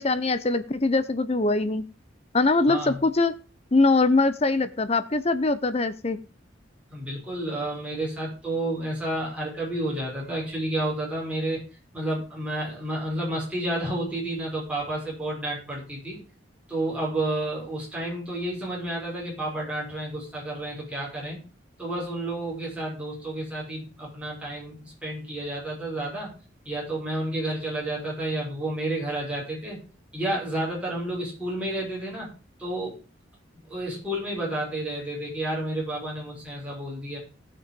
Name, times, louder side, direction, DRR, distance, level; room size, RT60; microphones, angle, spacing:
voice 1, 0.0-1.8 2.3-3.3 3.7-6.2, left 3 dB, 35° left, 13 dB, 0.7 m, -22 dB
voice 2, 2.7-3.0 6.9-11.6 11.9-16.2 16.7-21.4 21.8-26.3 26.7-29.8 30.1-32.3 32.6-33.0 33.7-37.2, right 1 dB, 5° right, -4 dB, 5.5 m, -30 dB
18.0 x 6.0 x 5.2 m, 0.35 s
head